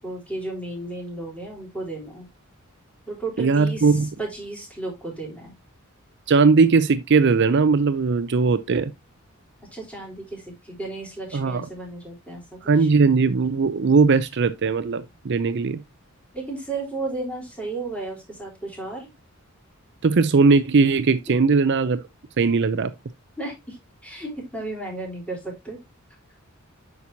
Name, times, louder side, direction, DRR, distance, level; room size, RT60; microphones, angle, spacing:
voice 1, 0.0-2.3 3.1-5.5 9.7-12.9 16.3-19.1 23.4-23.8 24.0-25.8, right 2 dB, 5° left, 3.7 m, -34 dB
voice 2, 3.4-4.1 6.3-8.9 11.3-11.7 12.6-15.8 20.0-22.0 22.4-22.9, right 4 dB, 55° right, 0.5 m, -19 dB
8.6 x 6.0 x 2.7 m
head